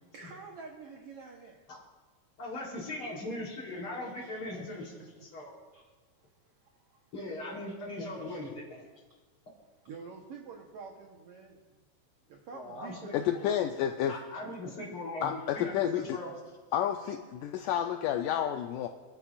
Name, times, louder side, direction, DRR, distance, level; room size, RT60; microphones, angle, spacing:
voice 1, 0.1-1.6 4.0-5.3 5.7-5.9 8.0-8.5 9.8-11.8 12.3-13.7 14.8-15.0 15.5-15.6, right 4 dB, 75° right, 1 dB, 1.4 m, -48 dB
voice 2, 2.4-4.9 5.2-5.6 7.1-8.6 12.5-13.1 14.1-16.3, left 1 dB, 35° left, -3 dB, 4.0 m, -39 dB
voice 3, 13.1-14.1 15.2-16.2 16.7-18.9, left 10 dB, 80° left, 5 dB, 1.9 m, -30 dB
28.0 x 11.5 x 2.5 m, 1.3 s
omnidirectional pair, 4.2 m